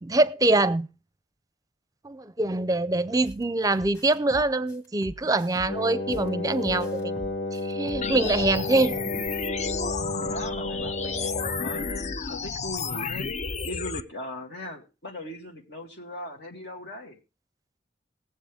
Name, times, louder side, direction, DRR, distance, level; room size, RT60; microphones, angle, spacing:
voice 1, 0.0-0.9 2.0-7.2 7.5-9.2, right 2 dB, 20° right, 0.6 m, -24 dB
sound 1, 3.2-3.4 3.8-6.3 6.6-8.8, equal, 20° left, 1.8 m, -42 dB
Wind instrument woodwind instrument, 5.7-12.2, left 2 dB, 85° left, 1.6 m, -32 dB
sound 2, 8.0-14.0, left 5 dB, 40° left, 0.5 m, -32 dB
voice 2, 10.2-17.2, left 1 dB, 65° left, 2.0 m, -39 dB
20.5 x 7.6 x 3.5 m
head